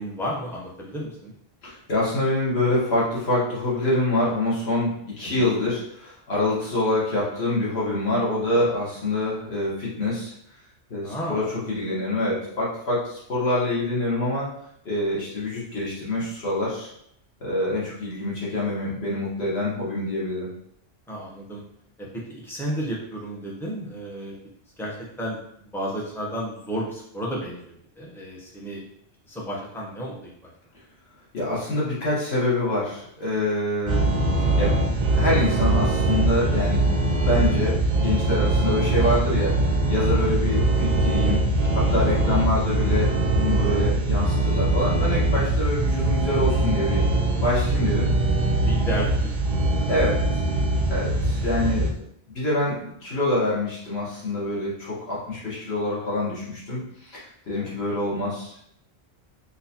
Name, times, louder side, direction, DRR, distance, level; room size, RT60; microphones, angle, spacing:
voice 1, 0.0-1.3 5.2-5.4 11.0-11.5 21.1-21.6 22.0-24.3 24.8-28.8 29.3-30.5 41.8-42.4 48.6-49.3 49.7-50.1 50.7-50.8 51.6-51.8 57.5-57.7, equal, 5° left, -4 dB, 0.5 m, -33 dB
voice 2, 1.6-10.3 10.9-14.5 14.8-16.9 17.4-20.5 31.3-34.1 34.6-34.8 35.2-36.9 37.2-41.4 41.7-47.0 47.4-48.1 49.9-50.4 50.9-51.9 52.3-58.6, left 1 dB, 60° left, -7 dB, 1.6 m, -26 dB
sound 1, 33.9-51.9, right 2 dB, 50° right, 0.5 m, -22 dB
4.0 x 2.6 x 2.7 m, 0.72 s
omnidirectional pair, 1.2 m